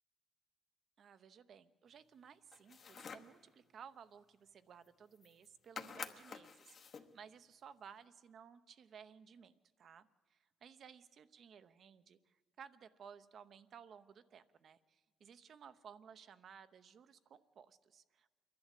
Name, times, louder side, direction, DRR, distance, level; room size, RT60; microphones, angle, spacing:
voice 1, 1.0-9.5 9.8-18.3, right 7 dB, 60° right, 13 dB, 0.8 m, -58 dB
sound 1, 2.5-3.4 4.9-5.0 5.1-5.5 5.8-7.1, left 6 dB, 50° left, 1.0 m, -49 dB
28.0 x 11.5 x 8.4 m, 1.4 s
cardioid pair, 90°, 0 cm